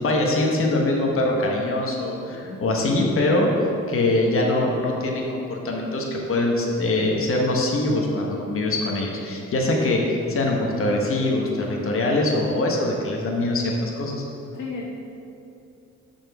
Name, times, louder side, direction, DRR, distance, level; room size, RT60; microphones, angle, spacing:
voice 1, 0.0-14.2, left 2 dB, 45° left, -1 dB, 1.2 m, -23 dB
voice 2, 2.3-2.6 14.5-14.9, left 4 dB, 75° left, -1 dB, 1.1 m, -35 dB
6.3 x 4.4 x 5.9 m, 2.7 s
cardioid pair, 90°, 30 cm